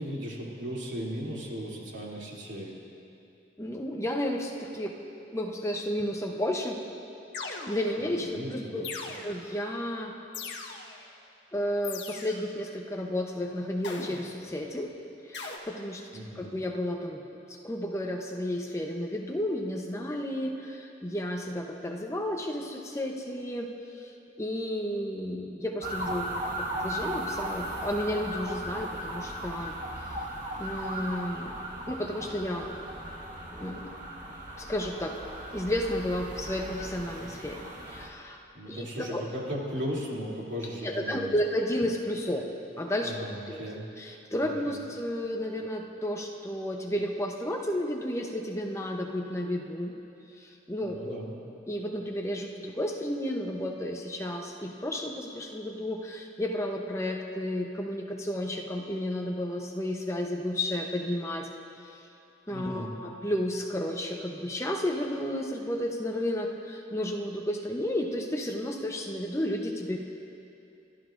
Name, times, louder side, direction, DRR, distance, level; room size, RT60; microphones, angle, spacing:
voice 1, 0.0-2.7 8.0-8.9 16.1-16.5 38.5-41.3 43.0-43.9 44.4-44.8 50.8-51.3 62.5-62.9, equal, 80° right, -4 dB, 2.8 m, -37 dB
voice 2, 3.6-5.0 5.3-6.8 7.7-8.8 9.2-10.1 11.5-14.9 15.3-16.0 16.4-23.7 24.0-24.1 24.4-29.7 30.6-31.5 31.9-32.7 33.5-33.9 34.6-35.2 35.5-38.4 38.7-38.9 39.1-39.2 40.8-42.5 42.8-43.2 43.5-43.6 44.0-50.0 50.4-61.5 61.8-62.0 62.5-70.0, left 1 dB, 15° left, 1 dB, 0.7 m, -32 dB
sound 1, 7.3-8.1 8.8-9.6 10.3-11.1 11.8-12.5 13.8-14.5 15.3-15.6, left 4 dB, 70° left, 1.3 m, -40 dB
sound 2, 25.8-38.1, right 1 dB, 45° right, 1.6 m, -37 dB
30.0 x 12.0 x 2.6 m, 2.7 s
head